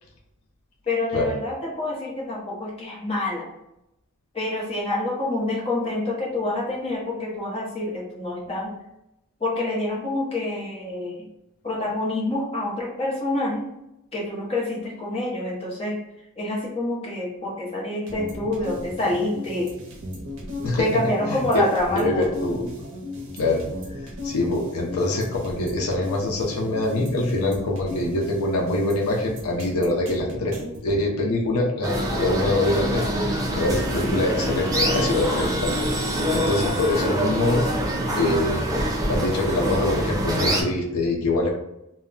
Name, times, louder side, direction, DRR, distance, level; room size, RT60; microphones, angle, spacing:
voice 1, 0.9-3.5 4.3-8.7 9.4-11.3 11.6-13.7 14.1-16.0 16.4-19.7 20.8-22.3, left 2 dB, 25° left, -4 dB, 0.8 m, -27 dB
sound 1, 18.1-31.0, left 1 dB, 60° right, 0.6 m, -36 dB
voice 2, 21.3-21.6 21.9-22.7 23.3-23.7 24.0-30.5 30.8-35.7 36.3-37.6 38.2-41.5, left 2 dB, 85° left, -1 dB, 0.5 m, -24 dB
sound 2, 31.8-40.6, equal, 15° right, 0.4 m, -25 dB
2.1 x 2.1 x 3.7 m, 0.85 s
head